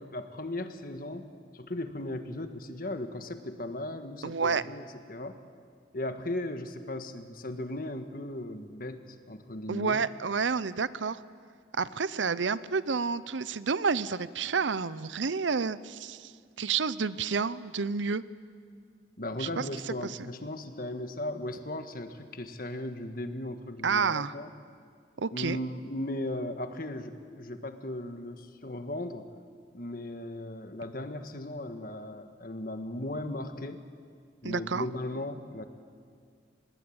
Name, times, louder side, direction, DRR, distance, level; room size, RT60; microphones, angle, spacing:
voice 1, 0.0-4.8 5.1-5.4 5.9-10.0 19.2-24.5 25.3-29.3 29.7-33.9 34.4-35.6, left 1 dB, 50° left, 8 dB, 1.6 m, -37 dB
voice 2, 4.2-4.6 9.7-11.2 11.8-16.3 16.6-18.2 19.4-20.2 23.8-24.3 25.2-25.6 34.4-34.9, right 5 dB, 90° right, 17 dB, 0.7 m, -30 dB
25.0 x 20.0 x 8.8 m, 2.1 s
head